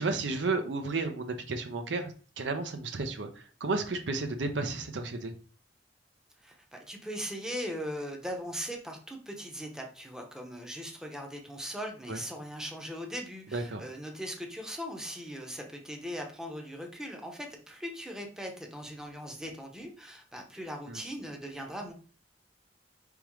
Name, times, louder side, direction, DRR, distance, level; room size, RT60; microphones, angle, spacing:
voice 1, 0.0-5.3 12.1-12.2 13.5-13.8 20.9-21.0, right 3 dB, 80° right, 7 dB, 0.7 m, -33 dB
voice 2, 6.4-21.9, equal, 5° right, 2 dB, 0.7 m, -39 dB
4.7 x 3.6 x 3.1 m, 0.40 s
head